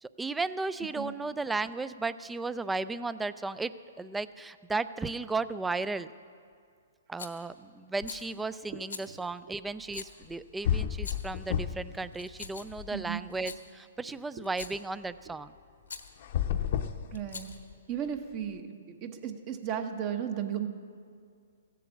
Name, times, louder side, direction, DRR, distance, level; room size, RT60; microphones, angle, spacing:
voice 1, 0.0-6.1 7.1-15.5, right 3 dB, 5° right, 15 dB, 0.3 m, -35 dB
Rattle, 7.2-7.5 8.0-8.3 8.9-9.1 9.9-10.1 10.9-11.4 12.1-12.8 13.3-13.6 14.4-14.9 15.9-16.1 17.1-17.7, left 5 dB, 85° left, 1.1 m, -43 dB
sound 1, 10.2-10.3 10.6-12.0 12.3-13.4 16.2-17.7, left 9 dB, 55° left, 0.7 m, -31 dB
voice 2, 12.9-13.2 17.1-17.5 17.9-18.8 19.0-20.7, right 9 dB, 35° right, 7 dB, 1.0 m, -34 dB
15.5 x 8.4 x 7.0 m, 2.2 s
hypercardioid pair, 135°, 0 cm